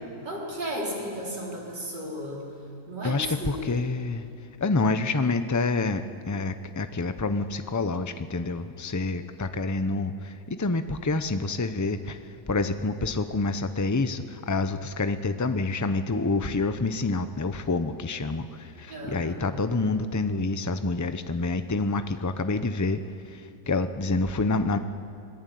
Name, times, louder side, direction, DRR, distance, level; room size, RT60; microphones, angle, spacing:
voice 1, 0.2-2.5 2.9-3.8 18.9-19.6, equal, 85° right, -4 dB, 5.2 m, -34 dB
voice 2, 3.0-4.3 4.6-12.2 12.5-23.0 23.3-24.8, left 3 dB, 25° left, 10 dB, 0.3 m, -27 dB
26.5 x 18.5 x 9.4 m, 2.7 s
omnidirectional pair, 1.8 m